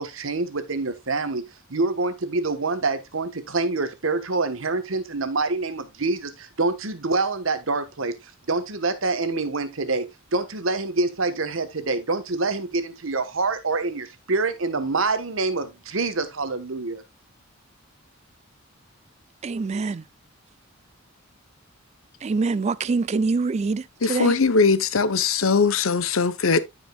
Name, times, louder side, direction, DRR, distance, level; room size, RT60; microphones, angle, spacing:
voice 1, 0.0-1.4 1.7-8.2 8.5-17.0, right 3 dB, 75° right, 1.3 m, -26 dB
voice 2, 19.4-20.0 22.2-24.3, right 4 dB, 30° right, 0.4 m, -25 dB
voice 3, 24.0-26.6, left 4 dB, 80° left, 0.8 m, -20 dB
14.5 x 5.2 x 2.3 m
head